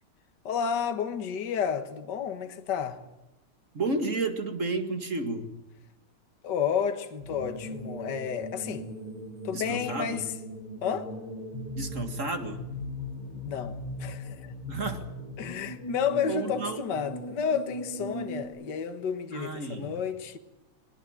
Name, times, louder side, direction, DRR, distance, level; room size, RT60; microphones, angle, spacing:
voice 1, 0.4-3.0 6.4-8.9 9.4-10.3 10.8-11.1 13.4-14.5 15.4-20.4, left 7 dB, 55° left, 2.0 m, -31 dB
voice 2, 3.7-5.6 9.5-10.3 11.7-12.7 14.7-15.0 16.3-16.8 19.3-20.0, right 3 dB, 35° right, 2.2 m, -32 dB
sound 1, 7.2-18.5, equal, 20° right, 7.6 m, -39 dB
22.5 x 20.5 x 9.0 m
omnidirectional pair, 2.4 m